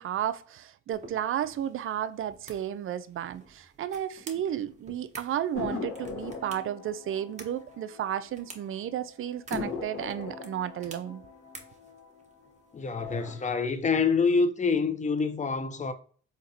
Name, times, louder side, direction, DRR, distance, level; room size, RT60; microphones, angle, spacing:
voice 1, 0.0-11.2, right 10 dB, 45° right, 0.4 m, -33 dB
sound 1, 0.9-13.8, right 3 dB, 25° right, 1.0 m, -52 dB
sound 2, 5.5-8.6 8.9-9.0 9.5-12.4 12.9-13.5, left 4 dB, 45° left, 1.1 m, -39 dB
voice 2, 12.7-15.9, left 4 dB, 25° left, 0.5 m, -26 dB
4.0 x 2.9 x 2.6 m
cardioid pair, 90°, 30 cm